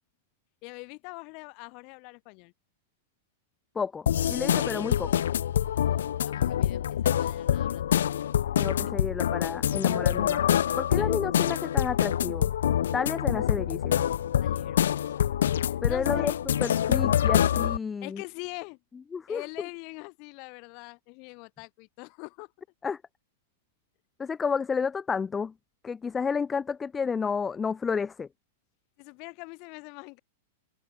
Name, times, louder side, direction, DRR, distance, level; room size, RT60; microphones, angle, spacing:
voice 1, 0.6-2.5 6.2-8.7 11.0-11.2 14.4-15.3 15.7-16.4 18.0-18.8 19.3-22.5 29.0-30.2, left 34 dB, 35° left, 4.2 m, -43 dB
voice 2, 3.7-5.3 8.6-10.4 10.8-12.5 12.9-14.1 15.8-16.3 16.6-18.2 19.1-19.4 22.8-23.0 24.2-25.5 25.8-28.3, left 5 dB, 10° left, 0.5 m, -31 dB
sound 1, 4.1-17.8, left 10 dB, 90° left, 0.3 m, -26 dB
open air
supercardioid pair, 170°, 0 cm